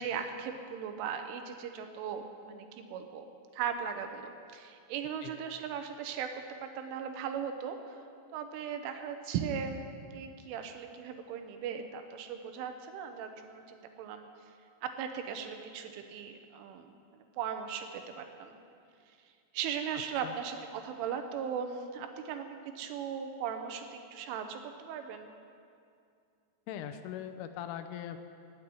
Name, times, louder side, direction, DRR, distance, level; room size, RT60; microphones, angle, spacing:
voice 1, 0.0-3.3 3.5-6.3 6.6-8.0 8.3-9.8 10.1-14.3 14.8-18.6 19.1-19.2 19.5-25.3, right 7 dB, 85° right, 7 dB, 3.3 m, -38 dB
voice 2, 26.7-28.2, left 10 dB, 85° left, 8 dB, 3.2 m, -40 dB
16.5 x 7.8 x 9.9 m, 2.4 s
omnidirectional pair, 5.8 m